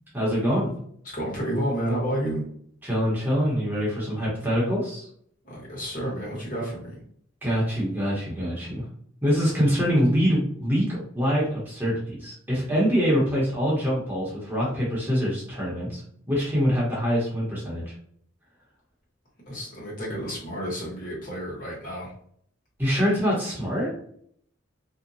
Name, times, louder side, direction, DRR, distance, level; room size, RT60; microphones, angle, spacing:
voice 1, 0.1-0.7 2.8-5.0 7.4-8.8 9.2-16.0 16.3-17.9 22.8-23.9, equal, 10° right, -6 dB, 0.9 m, -24 dB
voice 2, 1.1-2.4 5.4-7.0 19.5-22.1, equal, 45° left, -5 dB, 1.1 m, -30 dB
2.7 x 2.1 x 2.6 m, 0.64 s
head